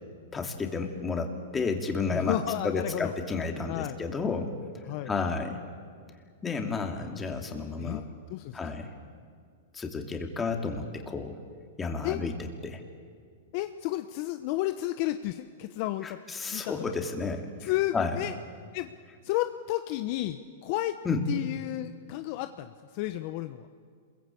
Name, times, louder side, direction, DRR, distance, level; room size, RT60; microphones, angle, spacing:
voice 1, 0.3-5.6 6.4-8.0 8.5-8.9 9.7-11.4 11.8-12.4 12.6-12.8 16.0-18.2 21.0-21.3, left 4 dB, 15° left, 3 dB, 2.8 m, -32 dB
voice 2, 2.1-3.1 3.7-4.0 4.9-5.1 7.8-8.6 12.0-12.2 13.5-16.2 16.5-16.9 17.6-18.3 18.7-18.9 19.2-20.9 21.3-23.7, left 15 dB, 45° left, 9 dB, 0.9 m, -32 dB
27.5 x 22.0 x 8.5 m, 2.1 s
hypercardioid pair, 135°, 0 cm